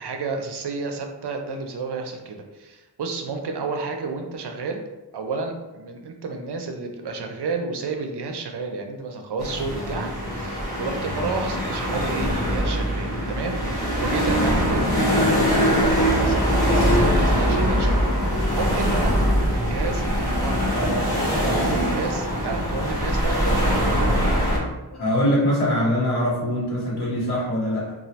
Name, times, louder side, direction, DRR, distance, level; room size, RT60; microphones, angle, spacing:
voice 1, 0.0-4.8 5.1-19.1 19.5-24.0, right 4 dB, 70° right, 4 dB, 0.5 m, -31 dB
sound 1, 9.4-24.6, equal, 10° left, 1.0 m, -22 dB
voice 2, 24.9-27.9, equal, 70° left, -6 dB, 1.0 m, -23 dB
3.1 x 2.4 x 2.7 m, 1.1 s
wide cardioid pair, 75°, 41 cm